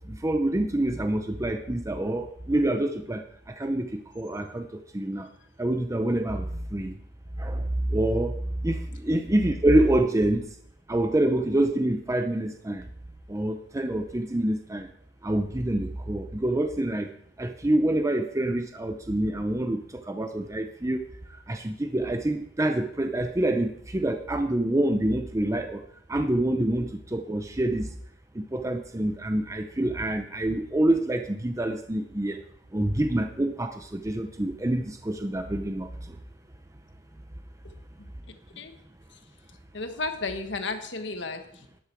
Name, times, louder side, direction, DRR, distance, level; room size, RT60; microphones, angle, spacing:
voice 1, 0.1-5.3 5.6-6.9 7.4-8.3 8.6-10.5 10.9-12.8 13.3-14.9 15.2-17.1 17.4-21.0 21.5-25.8 26.1-27.9 28.3-32.4 32.7-36.2, right 1 dB, 15° right, 6 dB, 0.6 m, -26 dB
voice 2, 39.7-41.8, left 3 dB, 65° left, 7 dB, 1.5 m, -34 dB
12.5 x 10.5 x 4.6 m, 0.70 s
head